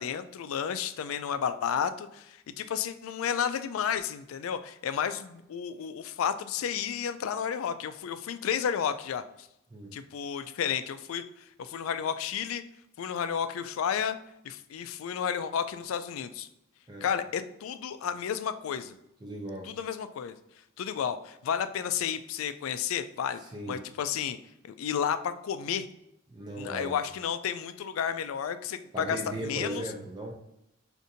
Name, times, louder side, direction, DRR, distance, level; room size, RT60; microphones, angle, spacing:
voice 1, 0.0-9.5 9.9-11.2 11.6-12.6 13.0-14.2 14.4-16.5 17.0-19.0 19.7-20.4 20.8-23.4 23.7-24.4 24.6-25.9 26.6-29.8, left 8 dB, 85° left, 12 dB, 0.3 m, -32 dB
voice 2, 19.2-19.7 23.4-23.8 26.3-27.0 28.9-30.3, right 1 dB, 20° right, 0 dB, 0.4 m, -37 dB
5.0 x 2.6 x 2.7 m, 0.83 s
head